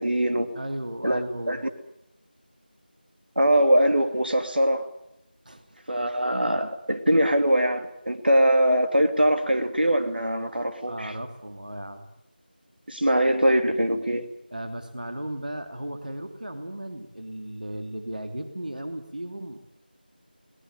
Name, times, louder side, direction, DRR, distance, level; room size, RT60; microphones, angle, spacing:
voice 1, 0.0-0.5 1.0-1.6 3.4-4.9 5.9-11.1 12.9-14.3, right 1 dB, 70° right, 7 dB, 2.9 m, -22 dB
voice 2, 0.6-1.6 5.4-5.8 10.9-12.1 14.5-19.6, right 1 dB, 55° right, 6 dB, 2.7 m, -35 dB
23.0 x 19.0 x 9.2 m, 0.83 s
figure-of-eight pair, 180°, 5 cm